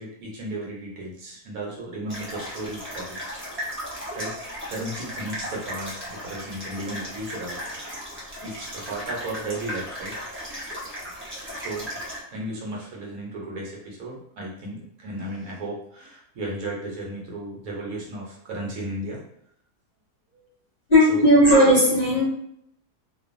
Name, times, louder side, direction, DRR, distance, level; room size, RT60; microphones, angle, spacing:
voice 1, 0.0-3.3 4.2-4.3 4.7-7.7 8.4-10.6 11.5-11.9 12.3-19.2 20.3-20.5 21.1-21.3, right 1 dB, 65° right, -3 dB, 1.1 m, -35 dB
sound 1, 2.1-12.2, equal, 20° right, 0.3 m, -36 dB
voice 2, 20.9-22.2, equal, 45° left, -8 dB, 0.7 m, -16 dB
2.5 x 2.4 x 2.4 m, 0.72 s
omnidirectional pair, 1.8 m